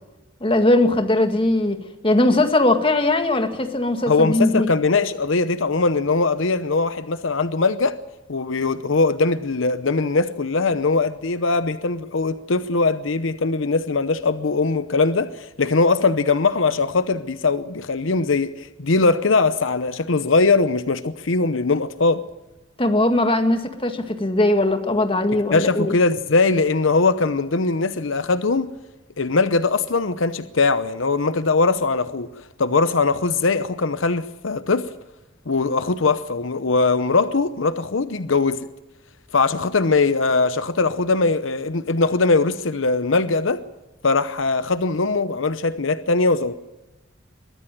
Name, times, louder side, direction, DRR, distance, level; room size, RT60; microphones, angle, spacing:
voice 1, 0.4-4.7 22.8-26.0, left 1 dB, 25° left, 1.9 m, -20 dB
voice 2, 4.1-8.0 8.3-22.2 25.5-28.7 29.2-34.9 35.5-38.7 39.3-43.6 44.0-46.5, left 3 dB, 75° left, 0.8 m, -21 dB
22.5 x 14.5 x 9.3 m
head